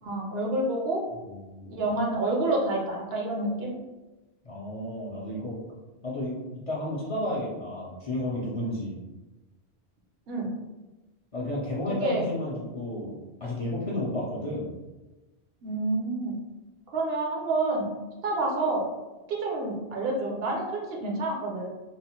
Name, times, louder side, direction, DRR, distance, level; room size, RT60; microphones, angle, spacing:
voice 1, 0.0-1.0 1.7-3.7 10.3-10.5 12.0-12.3 15.6-16.4 16.9-17.9 18.2-18.8 19.3-21.7, right 2 dB, 70° right, -1 dB, 0.8 m, -28 dB
voice 2, 1.2-1.8 4.4-5.6 6.0-6.4 6.7-9.0 11.3-13.2 13.4-14.7, left 1 dB, 45° left, -6 dB, 0.5 m, -32 dB
2.9 x 2.0 x 2.8 m, 1.1 s
omnidirectional pair, 1.1 m